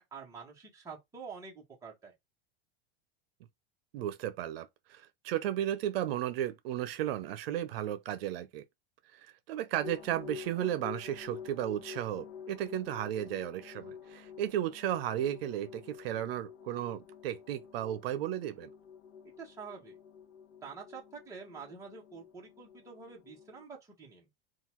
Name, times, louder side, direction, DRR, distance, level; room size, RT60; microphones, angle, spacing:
voice 1, 0.1-2.1 19.4-20.0 20.6-24.3, right 5 dB, 10° right, 1.2 m, -47 dB
voice 2, 3.9-8.6 9.1-18.7, right 12 dB, 70° right, 0.7 m, -34 dB
sound 1, 9.8-23.6, left 7 dB, 70° left, 1.0 m, -48 dB
3.8 x 2.4 x 4.4 m
supercardioid pair, 160°, 30 cm